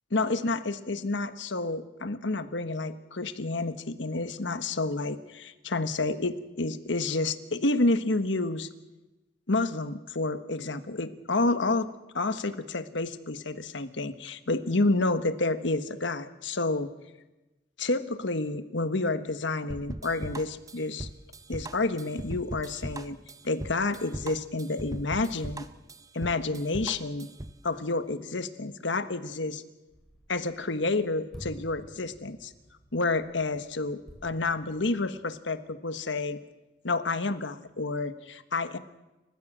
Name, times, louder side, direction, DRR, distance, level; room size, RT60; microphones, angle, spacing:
voice 1, 0.1-8.7 9.5-11.9 12.1-16.9 17.8-21.1 21.5-23.2 23.4-25.6 26.1-27.3 27.6-29.6 30.3-32.5 32.9-36.4 36.8-38.8, left 2 dB, 70° left, 10 dB, 1.4 m, -29 dB
sound 1, 19.7-27.6, right 1 dB, 20° right, 0.8 m, -39 dB
sound 2, 29.9-35.3, equal, ahead, 4.5 m, -50 dB
29.0 x 15.0 x 7.4 m, 1.1 s
head